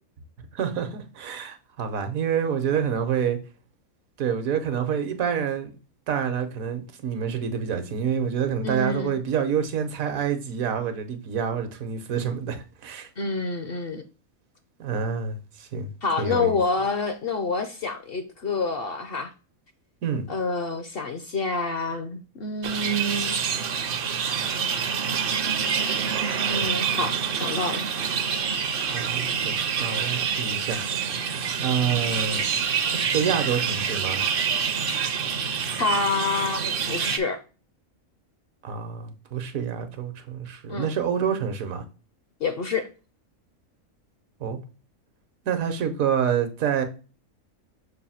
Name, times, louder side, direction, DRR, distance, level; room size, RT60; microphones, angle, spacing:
voice 1, 0.4-3.4 4.2-5.7 6.1-13.1 14.8-15.9 16.2-16.6 20.0-20.2 28.8-32.4 32.9-34.2 38.6-41.8 44.4-44.6 45.4-46.8, right 7 dB, 75° right, 1.3 m, -27 dB
voice 2, 8.6-9.2 13.2-14.0 16.0-19.3 20.3-23.4 26.5-27.9 35.8-37.4 40.7-40.9 42.4-42.9, left 3 dB, 55° left, 0.7 m, -27 dB
sound 1, 22.6-37.2, right 6 dB, 55° right, 0.6 m, -27 dB
6.4 x 2.6 x 5.6 m
omnidirectional pair, 1.5 m